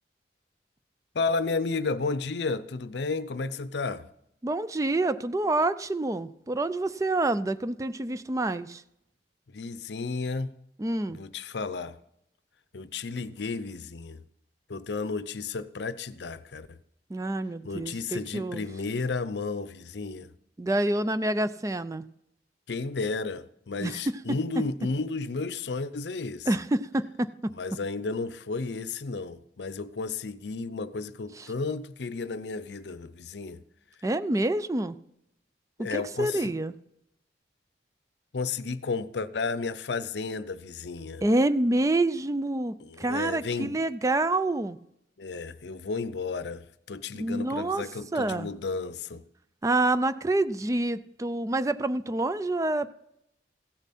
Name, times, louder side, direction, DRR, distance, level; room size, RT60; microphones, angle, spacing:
voice 1, 1.1-4.1 9.5-10.5 11.1-12.0 12.7-14.2 14.7-16.8 17.6-20.3 22.7-26.5 27.5-33.6 35.8-36.5 38.3-41.2 42.8-43.8 45.2-49.2, left 4 dB, 75° left, 0.6 m, -33 dB
voice 2, 4.4-8.8 10.8-11.2 17.1-18.6 20.6-22.0 23.8-24.4 26.5-27.5 31.4-31.5 34.0-35.0 35.8-36.7 41.2-44.8 47.2-47.8 48.1-48.5 49.6-52.9, right 2 dB, 20° right, 0.4 m, -27 dB
16.0 x 7.1 x 4.2 m
head